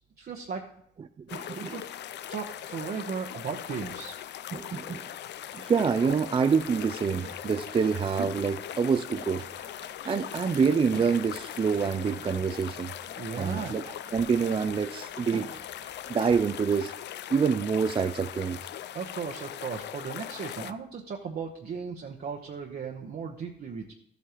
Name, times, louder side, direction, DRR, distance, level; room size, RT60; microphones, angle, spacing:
voice 1, 0.2-0.6 1.6-1.8 2.3-4.2 13.2-13.7 18.9-23.9, right 6 dB, 50° right, 1 dB, 1.0 m, -36 dB
sound 1, 1.3-20.7, left 11 dB, 60° left, 0.4 m, -40 dB
voice 2, 1.3-1.7 4.5-5.0 5.5-9.4 10.1-12.9 13.4-13.8 14.1-15.5 16.1-16.9 17.3-18.6, right 6 dB, 25° right, 10 dB, 0.4 m, -26 dB
sound 2, 6.6-16.4, right 4 dB, 75° right, 1.4 m, -46 dB
13.0 x 8.3 x 3.0 m, 0.73 s
cardioid pair, 90°, 20 cm